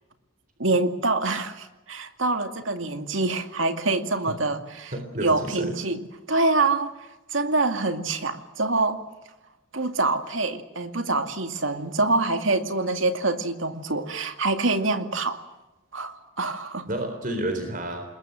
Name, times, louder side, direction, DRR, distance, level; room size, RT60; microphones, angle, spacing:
voice 1, 0.6-4.9 5.2-6.0 6.3-6.9 7.3-9.0 9.7-15.4 15.9-16.9, right 3 dB, 75° right, 7 dB, 2.3 m, -25 dB
voice 2, 4.9-5.7 16.9-18.0, right 1 dB, 40° right, 6 dB, 3.9 m, -30 dB
28.5 x 21.0 x 7.7 m, 1.1 s
head